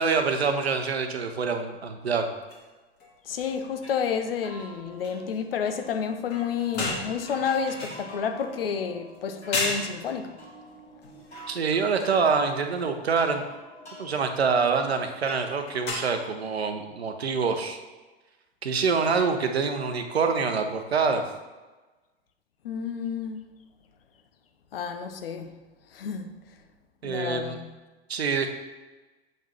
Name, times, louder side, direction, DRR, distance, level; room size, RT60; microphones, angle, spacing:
voice 1, 0.0-2.3 11.5-13.4 14.0-17.8 18.6-21.2 27.0-27.6 28.1-28.5, right 5 dB, 75° right, 0.8 m, -25 dB
sound 1, 2.5-2.7 3.0-3.1 3.4-3.8 6.3-8.6 9.1-9.2 9.5-9.9 11.0-12.2 12.7-12.9 15.3-15.9, left 2 dB, 30° left, 1.6 m, -34 dB
voice 2, 3.3-10.4 22.6-23.5 24.7-25.5 25.9-26.3 27.0-27.7, left 6 dB, 60° left, 0.7 m, -30 dB
sound 2, 3.8-14.0, equal, 90° left, 1.4 m, -47 dB
7.6 x 5.4 x 3.0 m
figure-of-eight pair, 90°, 32 cm